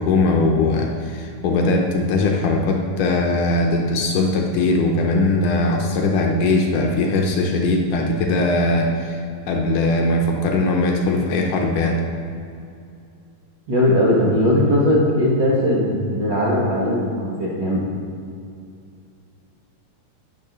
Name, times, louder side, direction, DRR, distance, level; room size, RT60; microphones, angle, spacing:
voice 1, 0.0-9.2 9.5-12.0, left 2 dB, 75° left, 1 dB, 2.0 m, -20 dB
voice 2, 13.7-17.8, left 1 dB, 65° right, -7 dB, 1.1 m, -19 dB
9.1 x 6.3 x 6.7 m, 2.5 s
omnidirectional pair, 4.4 m